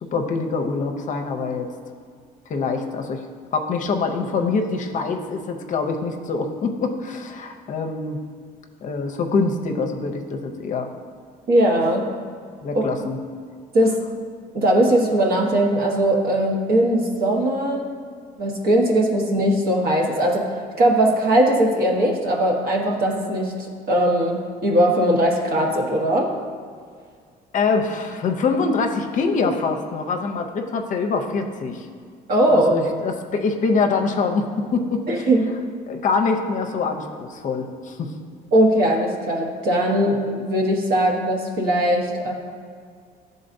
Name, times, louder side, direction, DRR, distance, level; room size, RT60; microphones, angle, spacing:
voice 1, 0.0-1.7 2.5-3.2 3.5-8.2 8.8-10.9 12.6-13.2 27.5-31.9 32.5-35.3 35.9-38.1, left 4 dB, 50° left, 4 dB, 0.6 m, -24 dB
voice 2, 11.5-12.1 12.7-12.9 13.7-14.0 14.5-17.9 18.4-26.3 32.3-32.7 35.1-35.5 38.5-42.3, right 1 dB, 60° right, 0 dB, 1.2 m, -20 dB
11.0 x 3.9 x 2.6 m, 2.1 s
cardioid pair, 110°, 17 cm